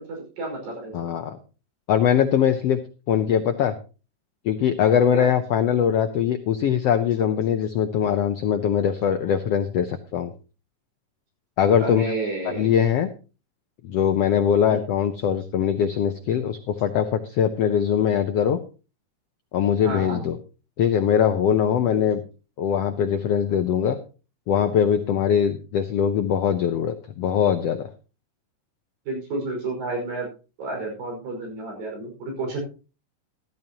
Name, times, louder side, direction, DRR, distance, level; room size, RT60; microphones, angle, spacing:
voice 1, 0.0-1.1 5.1-5.3 11.8-12.7 14.7-14.8 19.8-20.2 29.1-30.3 30.6-32.6, right 2 dB, 85° right, 0 dB, 7.1 m, -31 dB
voice 2, 0.9-1.4 1.9-2.8 3.1-3.7 4.4-10.3 11.6-12.1 12.4-13.1 13.8-18.6 19.5-20.4 20.8-22.2 22.6-24.0 24.5-27.9, left 8 dB, 85° left, 8 dB, 1.4 m, -22 dB
14.0 x 14.0 x 2.9 m, 0.34 s
omnidirectional pair, 3.9 m